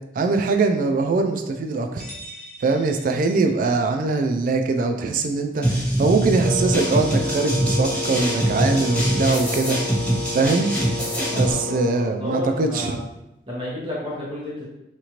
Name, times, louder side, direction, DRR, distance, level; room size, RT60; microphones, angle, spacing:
voice 1, 0.2-2.0 2.6-9.8 10.3-10.7 11.3-12.9, right 3 dB, 50° right, 5 dB, 0.3 m, -22 dB
sound 1, 2.0-3.8, equal, 40° left, 0.7 m, -43 dB
sound 2, 5.6-11.5, right 1 dB, 5° left, 1.1 m, -23 dB
Wind instrument woodwind instrument, 6.4-12.2, left 2 dB, 65° right, 0.7 m, -30 dB
voice 2, 11.3-13.1 13.5-14.7, left 1 dB, 30° right, -7 dB, 1.0 m, -31 dB
2.9 x 2.4 x 2.9 m, 0.89 s
head